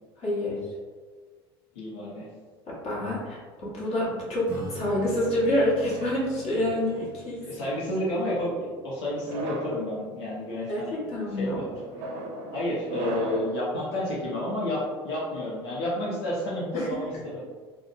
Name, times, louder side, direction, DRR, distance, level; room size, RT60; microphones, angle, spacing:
voice 1, 0.2-0.7 2.7-7.5 10.7-11.6 16.7-16.9, left 1 dB, 50° left, -6 dB, 1.2 m, -27 dB
voice 2, 1.7-2.3 7.4-11.0 11.3-11.7 12.5-17.5, left 1 dB, 75° left, -6 dB, 0.6 m, -30 dB
Acoustic guitar / Strum, 4.5-10.4, left 1 dB, 10° right, 0.8 m, -45 dB
sound 1, 5.7-7.1 7.9-8.3 9.1-9.8 10.5-10.8 11.7-13.6, right 2 dB, 60° right, 0.5 m, -37 dB
3.5 x 2.0 x 2.4 m, 1.5 s
hypercardioid pair, 70°, 14 cm